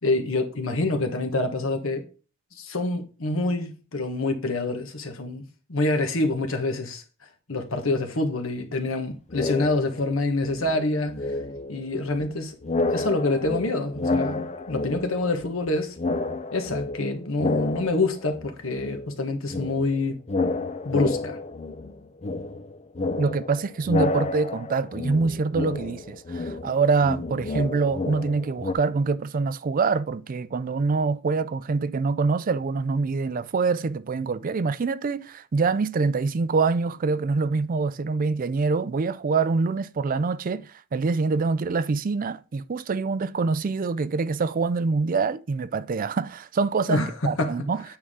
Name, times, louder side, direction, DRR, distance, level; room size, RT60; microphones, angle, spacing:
voice 1, 0.0-2.1 2.5-5.4 5.7-7.0 7.5-11.3 11.7-12.6 12.9-16.0 16.5-20.2 20.8-21.4 46.9-47.7, left 2 dB, 80° left, 1.4 m, -26 dB
sound 1, 9.3-10.2 10.4-12.4 12.6-15.7 16.0-18.5 18.8-28.7, left 3 dB, 35° left, 0.5 m, -30 dB
voice 2, 23.2-47.8, right 4 dB, 45° right, 0.4 m, -25 dB
8.7 x 4.6 x 3.7 m
head